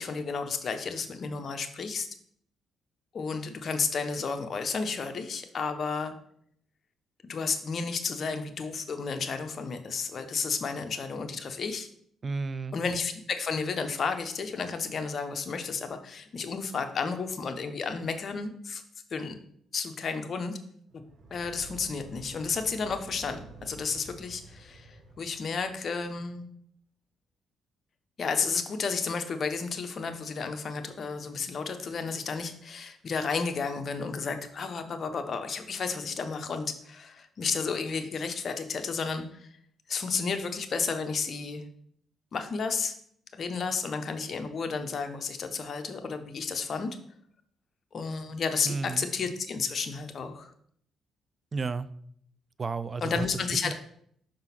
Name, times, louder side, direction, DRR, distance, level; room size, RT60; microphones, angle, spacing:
voice 1, 0.0-2.1 3.1-6.1 7.2-11.9 12.7-18.8 19.1-19.4 19.7-20.6 21.3-26.5 28.2-39.5 39.9-41.6 42.3-42.9 43.3-47.0 47.9-50.5 53.0-53.7, left 5 dB, 50° left, 7 dB, 0.9 m, -32 dB
voice 2, 12.2-12.8 48.7-49.1 51.5-51.9 52.6-53.3 53.6-53.7, right 4 dB, 35° right, 14 dB, 0.4 m, -32 dB
sound 1, 20.9-26.1, right 3 dB, 60° right, 1.2 m, -50 dB
5.8 x 3.8 x 5.8 m, 0.65 s
cardioid pair, 90°, 0 cm